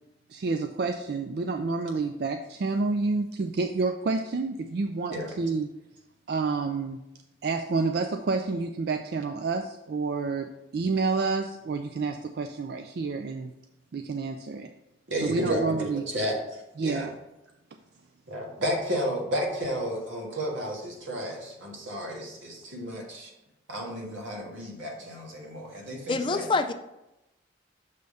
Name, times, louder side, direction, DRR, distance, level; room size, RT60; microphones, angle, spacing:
voice 1, 0.3-5.7 6.3-7.0 7.4-13.5 13.9-14.7 15.2-16.0 16.8-17.1, right 4 dB, 55° right, 6 dB, 0.3 m, -29 dB
voice 2, 15.1-16.4 16.8-17.1 18.3-23.3 23.7-26.5, equal, 90° right, -1 dB, 1.7 m, -32 dB
voice 3, 26.1-26.7, left 3 dB, 25° left, 9 dB, 0.3 m, -25 dB
6.6 x 3.5 x 5.3 m, 0.92 s
head